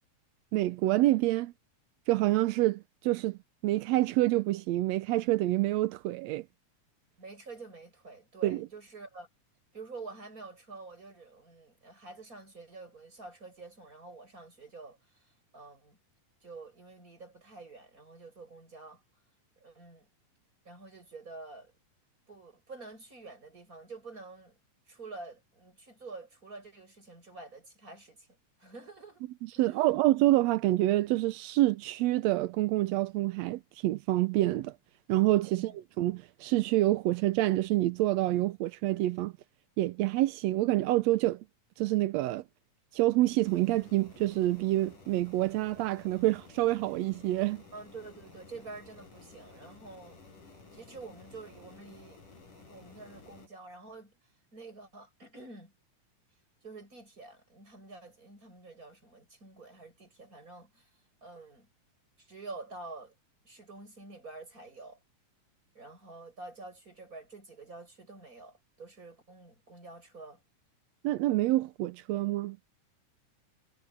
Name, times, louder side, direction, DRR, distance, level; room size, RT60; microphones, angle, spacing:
voice 1, 0.5-1.5 2.1-6.4 8.4-8.7 29.6-34.7 35.1-39.3 39.8-41.4 41.8-42.4 42.9-47.6 71.0-72.6, right 16 dB, 80° right, 1.6 m, -27 dB
voice 2, 7.2-9.3 9.7-16.0 16.4-19.0 19.6-20.1 20.6-21.7 22.3-24.6 24.9-28.3 28.6-29.2 29.5-29.9 35.5-35.8 47.7-50.2 50.7-52.2 52.7-54.1 54.5-55.7 56.6-60.9 61.2-61.7 62.2-63.1 63.4-65.0 65.7-70.4, right 3 dB, 25° right, 8.1 m, -48 dB
sound 1, 43.4-53.5, left 4 dB, 85° left, 5.8 m, -54 dB
omnidirectional pair, 3.7 m